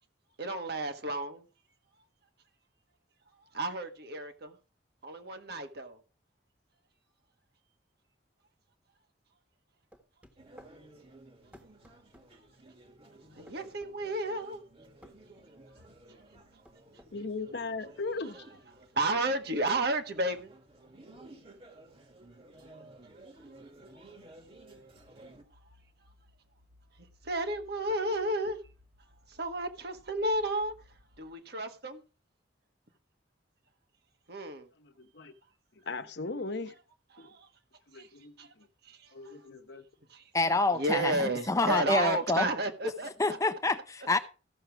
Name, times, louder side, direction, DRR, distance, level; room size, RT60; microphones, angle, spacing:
voice 1, 0.4-1.4 3.5-4.5 5.0-6.0 13.4-14.6 19.0-20.5 23.9-24.0 27.2-28.6 29.3-30.7 31.2-32.0 34.3-34.7 37.1-37.5 37.9-38.1 38.4-38.5 38.8-39.3 40.1-40.2 40.8-43.4, right 2 dB, 60° right, 1.5 m, -32 dB
sound 1, 9.9-10.8 11.5-12.3 13.5-14.0 15.0-15.2 16.3-17.1, equal, 10° right, 1.4 m, -55 dB
sound 2, 10.4-25.4, right 2 dB, 30° right, 1.7 m, -55 dB
voice 2, 17.1-18.4 34.8-35.3 35.9-36.7 37.2-37.3 37.9-38.7 39.1-39.8, left 3 dB, 60° left, 1.1 m, -38 dB
sound 3, 24.3-31.3, left 2 dB, 80° right, 7.5 m, -63 dB
voice 3, 40.3-42.5 43.2-44.2, left 3 dB, 15° left, 0.6 m, -27 dB
15.0 x 6.6 x 4.7 m
head